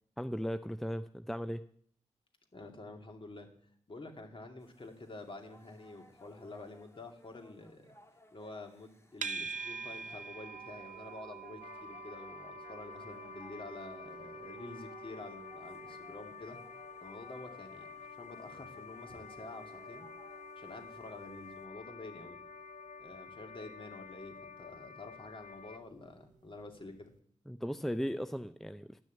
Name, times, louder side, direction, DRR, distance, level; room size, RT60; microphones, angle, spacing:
voice 1, 0.2-1.6 27.5-29.0, equal, ahead, 10 dB, 0.5 m, -37 dB
voice 2, 2.5-3.5 3.9-7.9 8.3-16.6 17.0-20.1 20.6-22.4 23.0-27.1, left 2 dB, 45° left, 3 dB, 2.5 m, -49 dB
sound 1, 4.6-21.7, left 2 dB, 20° left, 1.7 m, -62 dB
sound 2, 9.2-26.4, right 5 dB, 85° right, 0.7 m, -49 dB
sound 3, 11.6-25.8, left 7 dB, 65° left, 0.6 m, -50 dB
12.0 x 6.3 x 9.2 m, 0.63 s
cardioid pair, 65°, 13 cm